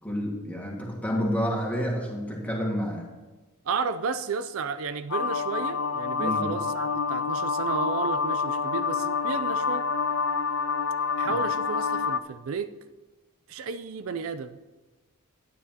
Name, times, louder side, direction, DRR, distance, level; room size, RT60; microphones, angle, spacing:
voice 1, 0.0-3.1 6.2-6.5 11.2-11.4, equal, 5° left, -2 dB, 1.7 m, -29 dB
voice 2, 3.7-9.8 11.2-12.7 13.5-14.6, right 5 dB, 75° right, 11 dB, 0.4 m, -32 dB
sound 1, 5.1-12.2, left 5 dB, 60° left, 0.4 m, -27 dB
12.5 x 9.4 x 2.9 m, 1.2 s
head